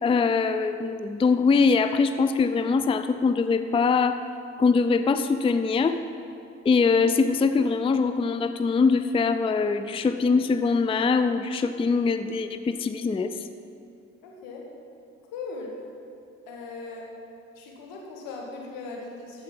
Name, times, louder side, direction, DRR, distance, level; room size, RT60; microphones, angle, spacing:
voice 1, 0.0-4.2 4.6-6.0 6.6-13.3, left 4 dB, 15° left, 10 dB, 0.4 m, -23 dB
voice 2, 14.2-14.7 15.3-15.7 16.5-17.1 17.5-19.4, left 3 dB, 75° left, -1 dB, 1.7 m, -38 dB
14.0 x 4.8 x 5.6 m, 2.5 s
hypercardioid pair, 45°, 35 cm